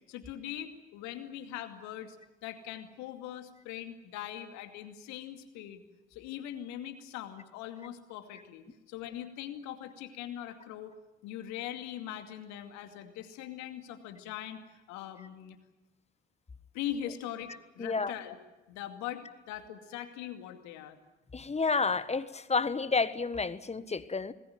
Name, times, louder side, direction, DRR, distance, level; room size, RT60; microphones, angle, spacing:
voice 1, 0.1-2.2 2.4-5.8 6.1-10.9 11.2-14.6 14.9-15.6 16.7-18.4 18.7-21.0, left 11 dB, 65° left, 7 dB, 2.4 m, -41 dB
voice 2, 17.8-18.1 21.3-24.3, left 4 dB, 20° left, 15 dB, 1.4 m, -30 dB
26.5 x 20.5 x 9.1 m, 1.1 s
figure-of-eight pair, 45°, 31 cm